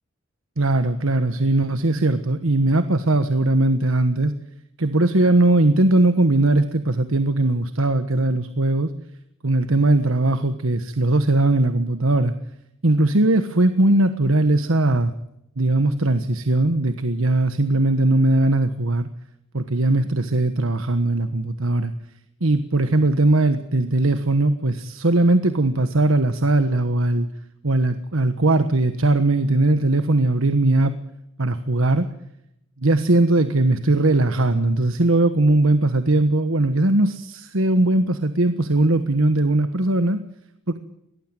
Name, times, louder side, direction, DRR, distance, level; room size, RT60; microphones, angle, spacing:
voice 1, 0.6-4.3 4.8-8.9 9.4-12.3 12.8-15.1 15.6-19.1 19.5-21.9 22.4-27.3 27.6-30.9 31.4-32.1 32.8-40.2 40.7-40.8, right 2 dB, 80° right, 10 dB, 1.4 m, -19 dB
23.5 x 18.5 x 9.1 m, 0.81 s
head